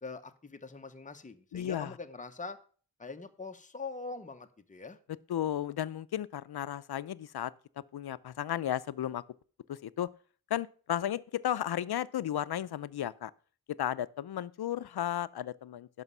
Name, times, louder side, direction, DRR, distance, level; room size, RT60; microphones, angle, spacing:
voice 1, 0.0-2.6 3.0-5.0, left 4 dB, 20° left, 0.9 m, -43 dB
voice 2, 1.5-1.9 5.3-7.5 7.9-9.2 9.7-10.1 10.5-13.3 13.8-16.0, left 11 dB, 80° left, 0.5 m, -34 dB
11.0 x 6.2 x 5.5 m
wide cardioid pair, 80°, 38 cm